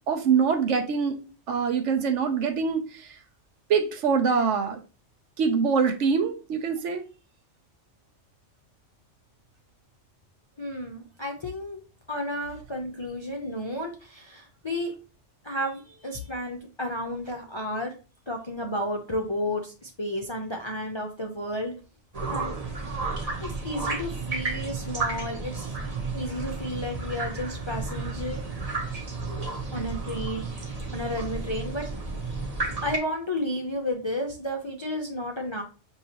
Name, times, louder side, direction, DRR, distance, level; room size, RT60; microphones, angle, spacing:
voice 1, 0.1-1.1 1.5-2.8 3.7-4.8 5.4-7.0, right 6 dB, 70° right, 1.0 m, -24 dB
voice 2, 10.6-11.8 12.1-14.9 15.4-17.9 18.3-21.7 22.3-22.6 23.4-25.8 26.1-28.4 29.7-30.4 30.9-31.9 32.8-35.6, left 1 dB, 35° left, 0.5 m, -32 dB
sound 1, 22.1-33.0, right 3 dB, 35° right, 0.9 m, -32 dB
6.5 x 2.8 x 2.9 m
omnidirectional pair, 1.3 m